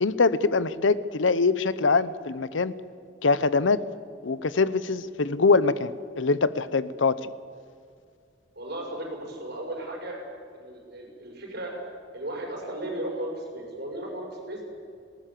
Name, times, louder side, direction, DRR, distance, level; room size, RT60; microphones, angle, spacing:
voice 1, 0.0-2.7 3.2-3.8 4.2-5.9 6.2-7.3, left 4 dB, 85° left, 16 dB, 0.8 m, -23 dB
voice 2, 8.6-10.2 10.5-11.7 12.1-14.6, right 1 dB, 60° right, 0 dB, 5.7 m, -35 dB
20.0 x 18.0 x 7.6 m, 2.3 s
head